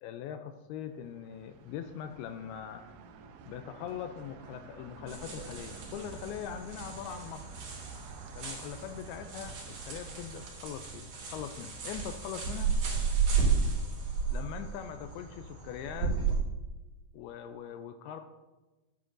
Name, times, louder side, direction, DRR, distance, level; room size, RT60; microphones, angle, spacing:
voice 1, 0.0-2.8 3.4-7.7 8.4-12.7 14.3-16.2 17.1-18.2, left 9 dB, 85° left, 8 dB, 2.3 m, -41 dB
sound 1, 0.7-10.5, right 5 dB, 85° right, 1.9 m, -51 dB
sound 2, 5.1-16.4, right 5 dB, 60° right, 4.8 m, -33 dB
12.5 x 8.9 x 2.5 m, 1.1 s
omnidirectional pair, 4.7 m